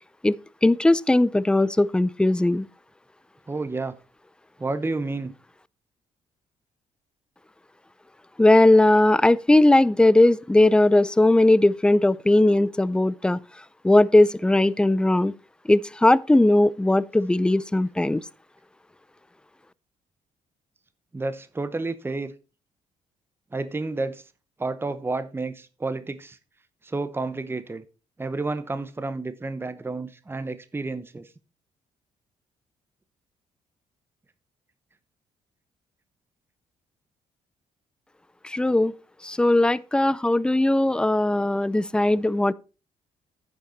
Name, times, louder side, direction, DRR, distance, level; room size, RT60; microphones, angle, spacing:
voice 1, 0.6-2.7 8.4-13.4 13.8-15.3 15.7-18.2 38.4-38.9 39.2-42.5, left 1 dB, 5° left, 0.5 m, -19 dB
voice 2, 3.5-4.0 4.6-5.3 21.1-22.3 23.5-24.2 24.6-26.4 26.8-27.8 28.2-31.3, right 3 dB, 15° right, 0.9 m, -30 dB
9.8 x 6.7 x 4.2 m
supercardioid pair, 65°, 14 cm